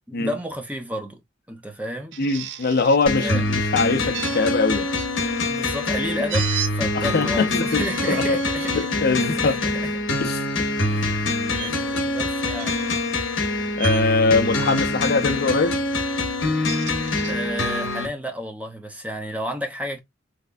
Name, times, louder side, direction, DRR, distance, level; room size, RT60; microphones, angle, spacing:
voice 1, 0.1-1.2 1.5-2.2 3.2-3.4 5.5-8.9 9.2-9.9 10.9-11.2 11.6-12.8 17.3-20.0, equal, 10° right, 0.7 m, -31 dB
sound 1, 2.1-3.3 4.1-5.1 6.3-6.7 7.6-8.9 9.5-9.7 11.5-11.7 12.5-13.1 13.8-14.1 14.5-15.0 16.4-17.3, right 11 dB, 65° right, 0.5 m, -34 dB
voice 2, 2.2-4.9 6.9-8.4 8.7-9.6 10.2-10.7 11.9-12.0 13.8-15.8, left 3 dB, 55° left, 0.6 m, -22 dB
sound 2, 3.1-18.1, left 2 dB, 70° left, 1.0 m, -25 dB
3.3 x 3.3 x 2.4 m
head